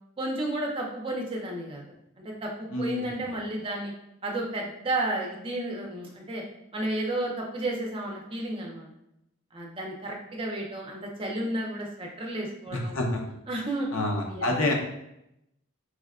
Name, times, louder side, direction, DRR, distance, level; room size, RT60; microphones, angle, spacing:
voice 1, 0.2-1.8 2.2-3.9 4.2-6.4 6.7-8.9 9.5-13.0 13.5-13.9 14.3-14.5, right 1 dB, 25° right, -1 dB, 0.5 m, -32 dB
voice 2, 2.7-3.3 12.7-13.2 13.9-14.7, left 2 dB, 75° left, 1 dB, 0.6 m, -28 dB
4.8 x 2.2 x 2.3 m, 0.83 s
head